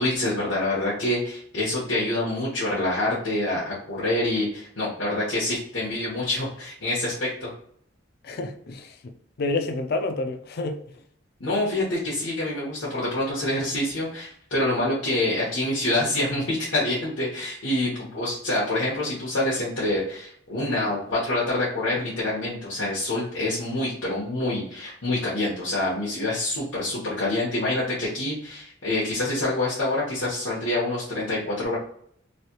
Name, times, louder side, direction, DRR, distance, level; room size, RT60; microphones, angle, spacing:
voice 1, 0.0-7.5 11.4-31.8, left 1 dB, 85° left, 1.1 m, -26 dB
voice 2, 8.2-10.8, left 2 dB, 55° left, 0.4 m, -29 dB
3.2 x 2.7 x 2.8 m
head